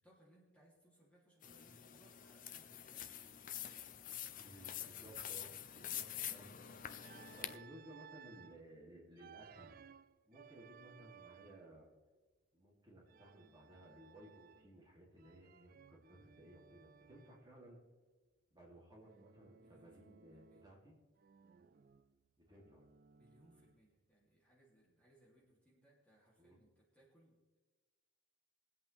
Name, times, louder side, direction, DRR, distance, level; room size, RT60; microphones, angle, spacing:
voice 1, 0.0-5.3 19.5-20.7 23.2-27.6, right 1 dB, 5° left, -6 dB, 3.0 m, -69 dB
sound 1, 1.4-7.6, left 10 dB, 40° left, 0.5 m, -47 dB
voice 2, 4.4-6.5 7.4-9.8 10.3-11.9 12.5-17.8 18.5-20.9 22.4-22.8 26.4-26.6, right 1 dB, 20° right, -5 dB, 3.0 m, -59 dB
Organ, 7.0-8.6 9.2-11.8 13.1-14.8 15.2-17.5 19.0-20.8 21.2-23.9, right 7 dB, 40° right, 0.3 m, -61 dB
22.5 x 8.3 x 3.5 m, 1.3 s
head